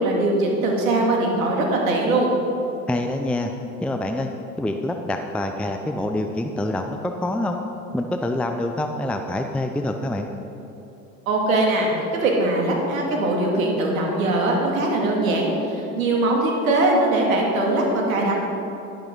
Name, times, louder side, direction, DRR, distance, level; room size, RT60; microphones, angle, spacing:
voice 1, 0.0-2.3 11.3-18.4, right 2 dB, 70° right, -1 dB, 2.5 m, -21 dB
voice 2, 2.9-3.5 3.8-4.3 4.6-7.6 7.9-10.3, left 1 dB, 5° left, 5 dB, 0.5 m, -26 dB
12.0 x 11.5 x 3.9 m, 3.0 s
hypercardioid pair, 80°, 42 cm